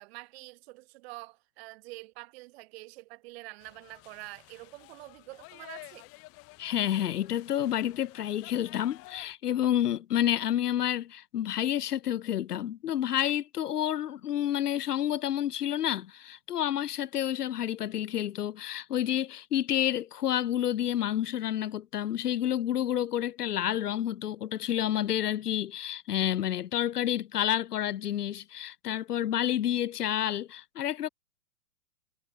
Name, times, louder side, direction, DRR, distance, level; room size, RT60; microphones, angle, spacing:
voice 1, 0.0-6.1, right 22 dB, 40° right, 1.7 m, -46 dB
sound 1, 3.6-9.3, left 24 dB, 25° left, 1.5 m, -51 dB
voice 2, 6.6-31.1, left 11 dB, 70° left, 0.9 m, -29 dB
hypercardioid pair, 120°, 49 cm